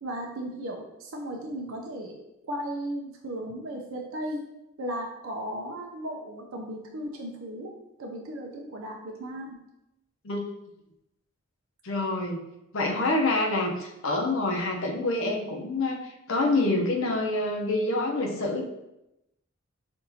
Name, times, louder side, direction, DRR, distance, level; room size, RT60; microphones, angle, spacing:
voice 1, 0.0-2.1 2.4-4.4 4.8-7.7 8.0-9.6, right 1 dB, 85° right, 0 dB, 0.6 m, -35 dB
voice 2, 11.8-12.4 12.7-18.6, left 2 dB, 75° left, 0 dB, 0.7 m, -27 dB
5.8 x 2.5 x 2.7 m, 0.89 s
head